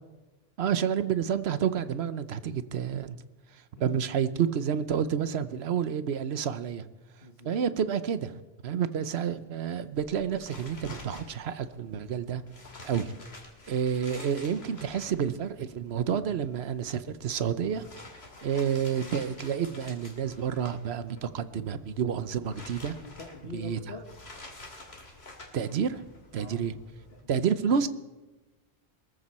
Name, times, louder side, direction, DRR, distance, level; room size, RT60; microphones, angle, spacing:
voice 1, 0.6-3.2 3.8-6.8 7.4-12.4 12.8-13.1 13.7-17.8 18.4-22.9 23.5-23.8 25.5-26.0 26.3-26.7 27.3-27.9, right 8 dB, 85° right, 13 dB, 1.1 m, -29 dB
voice 2, 7.2-7.6 22.8-24.0 26.3-26.7 27.1-27.9, left 3 dB, 70° left, -1 dB, 1.8 m, -45 dB
sound 1, 9.9-27.2, left 2 dB, 85° left, 2.8 m, -49 dB
22.5 x 14.5 x 4.3 m, 1.1 s
omnidirectional pair, 1.0 m